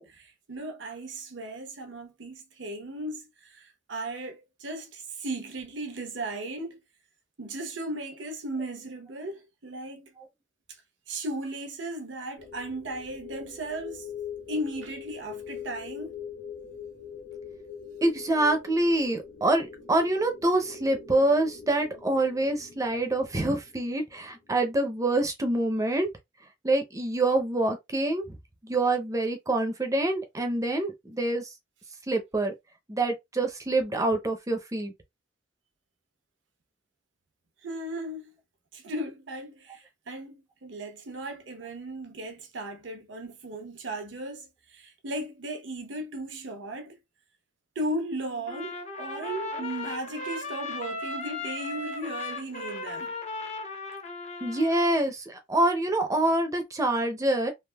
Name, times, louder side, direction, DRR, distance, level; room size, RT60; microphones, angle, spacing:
voice 1, 0.0-6.8 7.4-10.1 11.1-14.1 14.5-16.2 37.6-38.3 38.7-47.0 47.8-53.1, right 1 dB, 80° right, 0.8 m, -36 dB
sound 1, 12.4-24.6, left 7 dB, 75° left, 1.2 m, -43 dB
voice 2, 18.0-26.1 26.6-28.2 28.6-31.5 32.1-32.5 32.9-34.9 54.4-57.5, right 2 dB, 20° right, 0.5 m, -26 dB
Trumpet, 48.5-55.1, left 3 dB, 40° left, 0.7 m, -37 dB
3.3 x 2.4 x 2.2 m
head